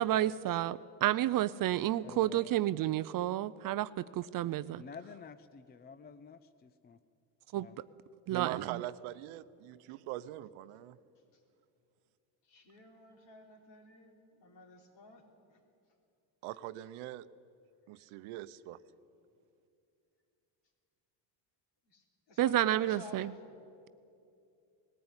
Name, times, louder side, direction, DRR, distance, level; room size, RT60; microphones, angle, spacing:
voice 1, 0.0-4.8 7.5-7.7 8.3-8.8 22.4-23.3, right 13 dB, 45° right, 16 dB, 0.5 m, -30 dB
voice 2, 2.0-2.5 4.8-7.0 7.6-7.8, left 6 dB, 20° left, 12 dB, 0.4 m, -50 dB
voice 3, 8.3-11.0 16.4-17.3 17.9-18.8, right 15 dB, 80° right, 15 dB, 0.8 m, -42 dB
voice 4, 12.4-15.6 17.9-18.1 21.9-23.6, left 2 dB, 60° left, 2 dB, 3.6 m, -53 dB
19.5 x 14.5 x 9.7 m, 2.6 s
cardioid pair, 120°, 48 cm